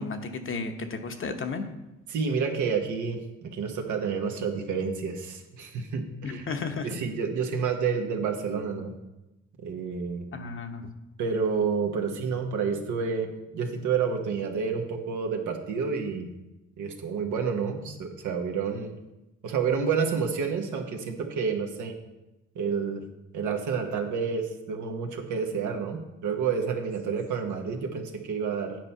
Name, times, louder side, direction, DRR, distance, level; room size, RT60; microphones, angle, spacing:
voice 1, 0.0-1.7 6.2-7.0 10.3-10.9, left 4 dB, 45° left, 6 dB, 0.9 m, -33 dB
voice 2, 2.1-6.4 6.8-8.9 9.6-10.3 11.2-13.3 13.5-16.3 16.8-18.9 19.4-21.9 22.5-23.0 23.3-28.8, right 5 dB, 80° right, 4 dB, 1.2 m, -29 dB
9.3 x 4.5 x 5.5 m, 0.97 s
cardioid pair, 90°, 30 cm